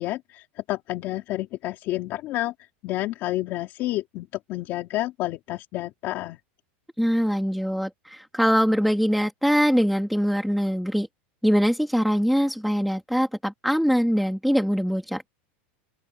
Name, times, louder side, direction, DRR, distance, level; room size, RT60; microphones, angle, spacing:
voice 1, 0.0-2.5 2.8-6.4, left 16 dB, 35° left, 3.1 m, -30 dB
voice 2, 7.0-11.1 11.4-15.2, equal, ahead, 2.2 m, -23 dB
open air
supercardioid pair, 175°, 6 cm